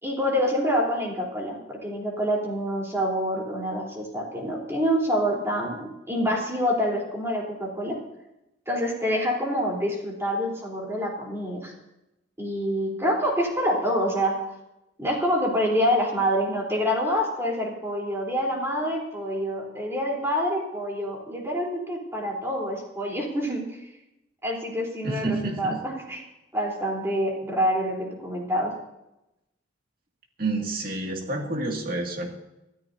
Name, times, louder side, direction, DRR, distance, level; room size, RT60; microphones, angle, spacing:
voice 1, 0.0-8.0 8.7-11.7 12.4-14.4 15.0-23.6 24.4-26.2 26.5-28.7, equal, 15° right, -2 dB, 3.8 m, -26 dB
voice 2, 25.0-25.8 30.4-32.3, right 2 dB, 50° right, 1 dB, 2.3 m, -29 dB
25.0 x 13.5 x 2.8 m, 0.91 s
head